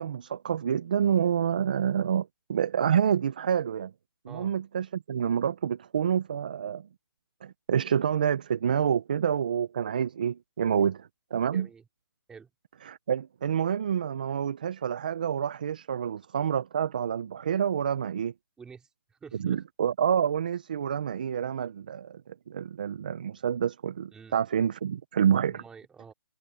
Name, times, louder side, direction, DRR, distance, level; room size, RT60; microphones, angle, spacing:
voice 1, 0.0-3.9 4.3-6.9 7.4-11.7 12.8-18.3 19.4-25.6, right 8 dB, 20° right, 0.3 m, -28 dB
voice 2, 11.5-11.8 12.3-12.5 18.6-19.6 24.1-24.4 25.5-26.1, right 6 dB, 5° right, 4.2 m, -48 dB
hypercardioid pair, 170°, 13 cm